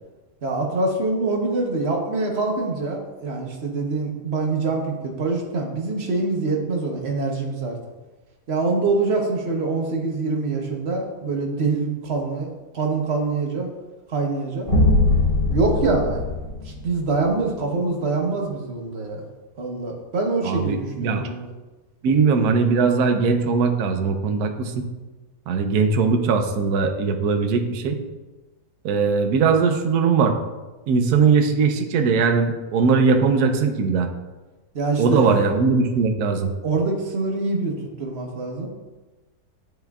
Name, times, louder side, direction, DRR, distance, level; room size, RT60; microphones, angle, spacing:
voice 1, 0.4-7.8 8.5-13.7 14.1-14.7 15.5-16.2 16.6-19.2 19.6-21.5 34.7-35.3 36.6-38.7, right 3 dB, 45° right, 0 dB, 1.1 m, -25 dB
sound 1, 14.7-17.3, left 2 dB, 30° left, 2.2 m, -21 dB
voice 2, 20.4-21.3 22.0-24.9 25.5-28.0 28.8-30.4 30.9-34.1 35.0-36.5, right 5 dB, 70° right, 5 dB, 1.1 m, -20 dB
10.5 x 4.4 x 2.4 m, 1.2 s
omnidirectional pair, 1.7 m